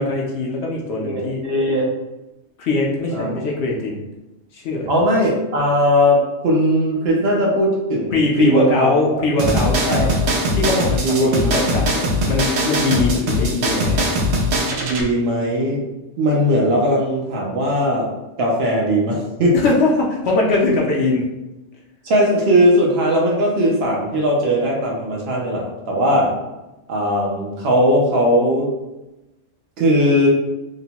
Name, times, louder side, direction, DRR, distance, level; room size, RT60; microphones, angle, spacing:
voice 1, 0.0-1.4 2.6-4.0 4.5-4.9 8.1-10.1 10.5-14.1 19.5-21.2, left 2 dB, 65° left, -2 dB, 0.8 m, -21 dB
voice 2, 1.0-1.9 3.1-3.4 4.9-8.9 9.9-10.1 11.0-11.8 14.7-15.8 16.2-18.1 18.4-19.6 20.6-20.8 22.0-26.3 26.9-28.7 29.8-30.3, equal, 60° right, -2 dB, 0.8 m, -18 dB
sound 1, 9.4-15.0, equal, 90° right, 1.0 m, -20 dB
2.9 x 2.1 x 2.7 m, 0.99 s
omnidirectional pair, 1.3 m